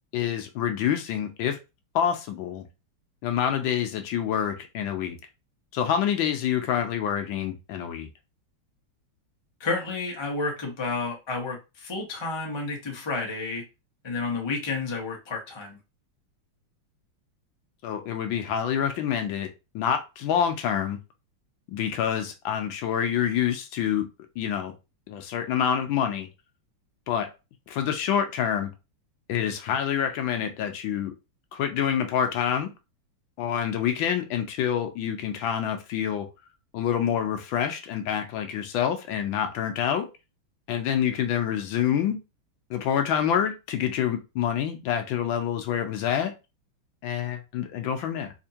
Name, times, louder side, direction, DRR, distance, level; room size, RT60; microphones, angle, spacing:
voice 1, 0.1-1.6 1.9-2.6 3.2-5.2 5.7-8.1 17.8-21.0 21.7-24.1 24.4-24.7 25.1-26.3 27.1-27.3 27.7-28.7 29.3-31.1 31.5-32.7 33.4-36.3 36.7-40.1 40.7-42.2 42.7-46.3 47.0-48.3, left 9 dB, 70° left, 1.3 m, -27 dB
voice 2, 9.6-13.6 14.0-15.8, left 3 dB, 40° left, 0.3 m, -31 dB
4.3 x 2.8 x 2.8 m
omnidirectional pair, 2.4 m